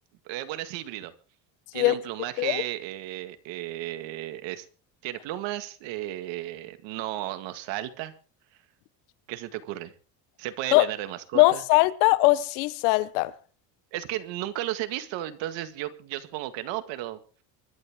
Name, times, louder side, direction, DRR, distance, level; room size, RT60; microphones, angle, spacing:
voice 1, 0.3-1.1 1.7-4.7 5.0-8.1 9.3-9.9 10.4-11.6 13.9-17.2, right 14 dB, 75° right, 2.0 m, -34 dB
voice 2, 11.3-13.3, left 20 dB, 90° left, 1.2 m, -20 dB
24.5 x 11.5 x 3.7 m
cardioid pair, 135°, 45 cm